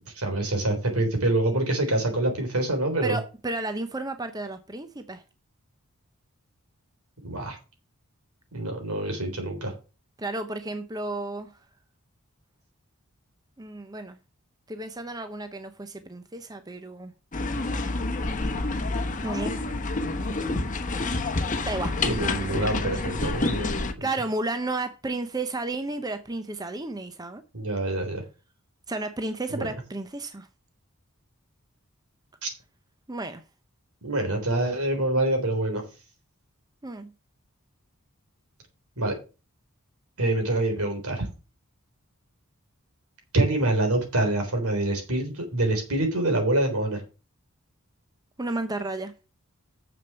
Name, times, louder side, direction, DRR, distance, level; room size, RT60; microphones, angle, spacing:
voice 1, 0.2-3.2 7.2-7.6 8.5-9.7 22.0-24.1 27.5-28.2 29.5-29.7 32.4-32.5 34.0-35.8 39.0-39.1 40.2-41.3 43.3-47.0, right 2 dB, 80° right, 3.7 m, -26 dB
voice 2, 3.0-5.2 10.2-11.5 13.6-14.2 14.7-17.1 19.2-19.5 20.2-20.7 21.6-22.0 24.0-27.4 28.9-30.5 33.1-33.4 36.8-37.1 48.4-49.1, right 2 dB, 15° right, 0.7 m, -32 dB
sound 1, 17.3-23.9, left 2 dB, 35° left, 1.0 m, -28 dB
7.0 x 6.5 x 6.9 m
head